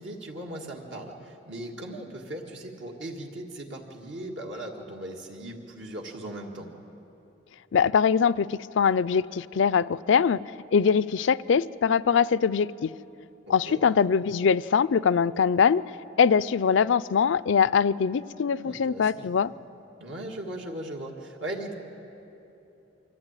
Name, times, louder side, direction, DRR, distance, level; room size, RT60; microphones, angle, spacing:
voice 1, 0.0-6.7 13.5-13.8 18.6-19.3 20.0-21.7, right 1 dB, 70° right, -1 dB, 1.9 m, -38 dB
voice 2, 7.7-10.4 10.7-12.9 13.5-15.8 16.2-19.5, left 6 dB, 70° left, 18 dB, 0.4 m, -22 dB
24.5 x 15.0 x 9.0 m, 2.9 s
head